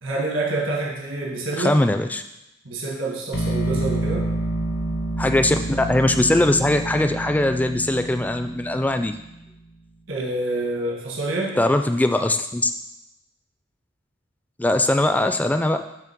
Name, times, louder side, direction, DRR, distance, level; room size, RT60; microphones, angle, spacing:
voice 1, 0.0-1.8 2.6-4.3 10.1-11.6, right 2 dB, 75° right, -3 dB, 1.5 m, -27 dB
voice 2, 1.6-2.2 5.2-9.1 11.6-12.7 14.6-15.8, left 1 dB, 10° left, 7 dB, 0.3 m, -21 dB
sound 1, 3.3-9.4, right 1 dB, 60° left, 0.7 m, -28 dB
7.1 x 3.2 x 5.9 m, 0.90 s
head